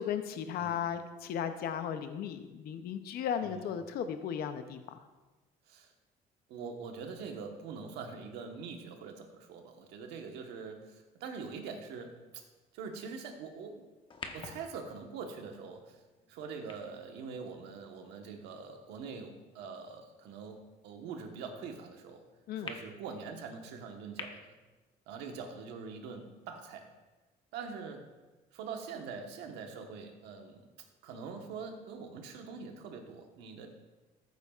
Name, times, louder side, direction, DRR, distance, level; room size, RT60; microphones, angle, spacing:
voice 1, 0.0-5.0 22.5-22.7, left 8 dB, 65° left, 9 dB, 0.6 m, -36 dB
voice 2, 6.5-12.4 12.7-13.9 14.3-16.0 16.3-20.6 20.8-22.2 22.5-24.5 25.1-26.9 27.5-28.0 28.5-30.6 31.0-33.7, right 5 dB, 90° right, 3 dB, 1.3 m, -44 dB
sound 1, 14.0-18.5 19.2-19.3 22.7-22.8 24.2-24.3, left 4 dB, 30° left, 1.0 m, -48 dB
14.0 x 8.0 x 2.4 m, 1.2 s
cardioid pair, 110°, 17 cm